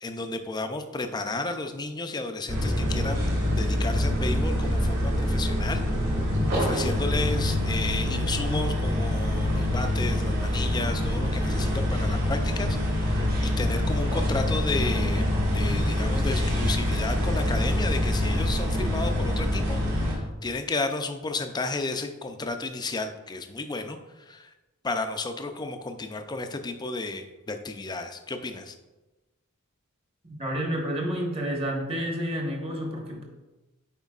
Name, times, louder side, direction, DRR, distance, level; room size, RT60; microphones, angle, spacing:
voice 1, 0.0-5.8 6.3-15.3 15.5-24.5 24.8-28.7, left 3 dB, 20° left, 7 dB, 0.4 m, -33 dB
sound 1, 2.5-20.2, left 1 dB, 55° right, 2.0 m, -25 dB
voice 2, 30.2-33.2, equal, 25° right, 0 dB, 1.1 m, -30 dB
9.1 x 4.4 x 2.4 m, 1.1 s
head